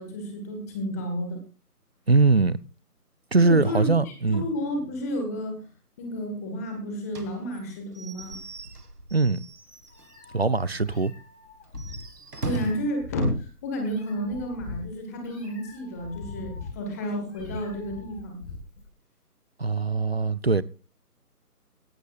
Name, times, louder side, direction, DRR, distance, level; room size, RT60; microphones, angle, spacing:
voice 1, 0.0-1.4 3.4-5.7 6.0-8.4 12.4-18.4, equal, 10° left, 1.5 m, -31 dB
voice 2, 2.1-2.6 3.3-4.4 9.1-9.4 10.3-11.1 19.6-20.6, right 3 dB, 45° right, 0.5 m, -21 dB
Slam / Squeak / Wood, 7.1-10.3 10.7-10.8 11.1-11.2 11.7-13.0, right 2 dB, 80° right, 1.9 m, -38 dB
Meow, 9.5-18.9, left 4 dB, 45° left, 5.7 m, -43 dB
17.0 x 12.5 x 2.4 m
figure-of-eight pair, 155°, 46 cm